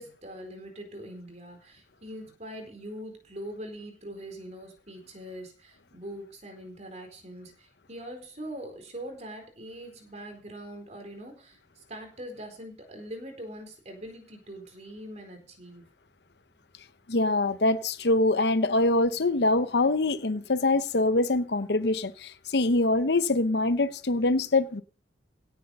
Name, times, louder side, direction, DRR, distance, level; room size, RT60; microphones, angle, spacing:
voice 1, 0.0-15.8, equal, 40° right, 4.3 m, -42 dB
voice 2, 17.1-24.8, left 2 dB, 65° left, 0.8 m, -24 dB
17.0 x 8.0 x 5.5 m
head